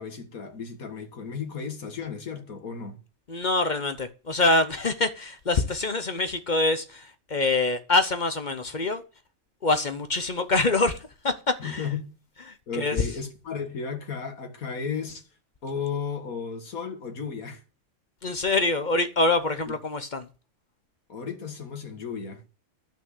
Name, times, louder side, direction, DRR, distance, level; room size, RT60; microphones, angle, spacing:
voice 1, 0.0-3.0 11.6-12.1 12.7-15.3 15.6-17.6 19.7-19.8 21.1-22.4, left 6 dB, 85° left, 2.1 m, -34 dB
voice 2, 3.3-9.0 9.6-11.9 12.5-13.1 18.2-20.3, left 2 dB, 40° left, 0.9 m, -25 dB
11.5 x 6.2 x 8.0 m
omnidirectional pair, 1.5 m